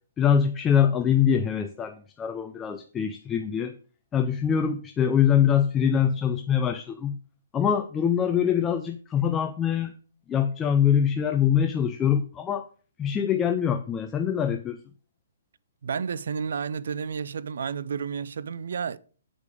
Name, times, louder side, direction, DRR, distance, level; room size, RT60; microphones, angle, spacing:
voice 1, 0.2-3.7 4.1-7.2 7.5-10.0 10.3-12.7 13.0-14.8, left 8 dB, 15° left, 0.4 m, -24 dB
voice 2, 15.8-19.0, right 6 dB, 70° right, 0.5 m, -31 dB
8.4 x 5.1 x 4.8 m
hypercardioid pair, 160°, 0 cm